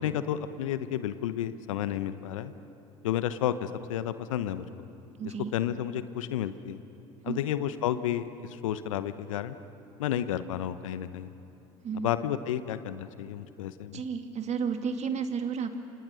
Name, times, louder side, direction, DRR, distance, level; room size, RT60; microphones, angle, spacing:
voice 1, 0.0-2.5 3.0-4.7 5.2-6.8 7.2-9.6 10.0-11.3 11.9-14.0, left 11 dB, 80° left, 13 dB, 0.9 m, -31 dB
voice 2, 5.2-5.5 7.2-7.4 11.8-12.1 13.9-15.8, right 6 dB, 40° right, 7 dB, 2.1 m, -32 dB
28.0 x 27.5 x 6.4 m, 2.9 s
hypercardioid pair, 65°, 17 cm